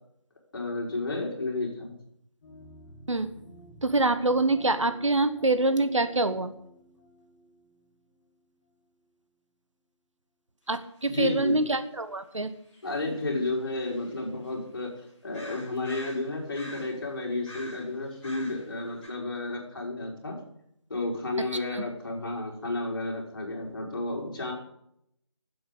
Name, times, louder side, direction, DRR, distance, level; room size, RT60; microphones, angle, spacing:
voice 1, 0.5-1.9 11.1-11.6 12.8-14.9 15.2-20.4 20.9-24.5, left 2 dB, 45° left, -1 dB, 4.3 m, -32 dB
sound 1, 2.4-9.0, equal, 25° left, 2.4 m, -52 dB
voice 2, 3.8-6.5 10.7-12.5 21.7-21.9, right 2 dB, 80° right, 11 dB, 1.2 m, -25 dB
sound 2, 10.7-10.8 11.0-11.1 12.7-14.5 15.0-15.1 15.3-17.1 17.3-18.7 19.0-19.1, left 1 dB, 5° left, 3.6 m, -46 dB
11.0 x 7.9 x 8.1 m, 0.74 s
figure-of-eight pair, 160°, 16 cm